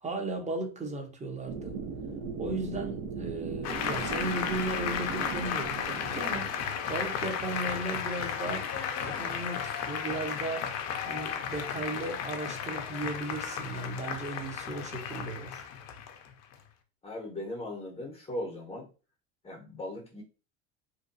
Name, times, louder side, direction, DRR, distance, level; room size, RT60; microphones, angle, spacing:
voice 1, 0.0-1.7 2.4-6.5 6.9-8.7 9.0-10.7 11.0-15.6, right 2 dB, 20° right, 0.9 m, -36 dB
sound 1, 1.5-7.4, right 5 dB, 60° right, 0.7 m, -38 dB
Applause, 3.6-16.6, left 7 dB, 45° left, 0.6 m, -34 dB
voice 2, 17.0-18.9 19.4-20.2, left 1 dB, 15° left, 0.8 m, -38 dB
2.7 x 2.2 x 2.6 m
hypercardioid pair, 85°, 36 cm